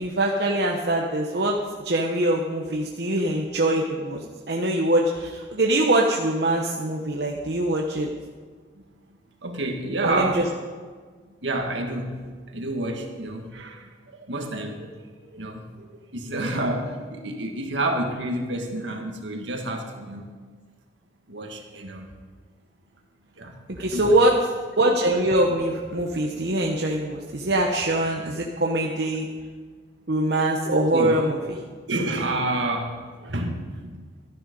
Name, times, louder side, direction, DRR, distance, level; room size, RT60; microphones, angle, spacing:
voice 1, 0.0-1.5 1.8-4.2 4.5-8.1 10.0-10.4 23.7-24.3 24.8-29.3 30.1-31.6, right 1 dB, 60° right, 0 dB, 1.0 m, -23 dB
voice 2, 9.4-10.4 11.4-12.2 12.5-14.9 15.2-20.3 21.3-22.1 23.4-24.2 30.7-31.2 31.9-34.0, right 2 dB, 80° right, 3 dB, 1.8 m, -29 dB
13.5 x 10.5 x 5.3 m, 1.5 s
head